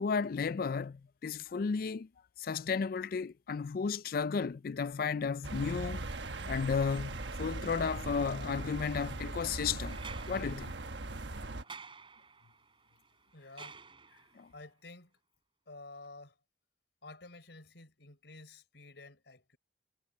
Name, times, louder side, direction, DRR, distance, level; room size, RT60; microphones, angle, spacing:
voice 1, 0.0-2.1 2.4-6.1 6.5-10.0 10.3-10.7 14.4-14.5, left 5 dB, 55° left, 0.4 m, -33 dB
sound 1, 5.4-11.6, right 2 dB, 80° right, 1.2 m, -40 dB
sound 2, 9.9-14.5 16.0-16.1, right 5 dB, 30° right, 5.0 m, -52 dB
voice 2, 13.3-13.8 14.5-15.1 15.7-16.4 17.0-19.6, left 2 dB, 75° left, 4.2 m, -51 dB
head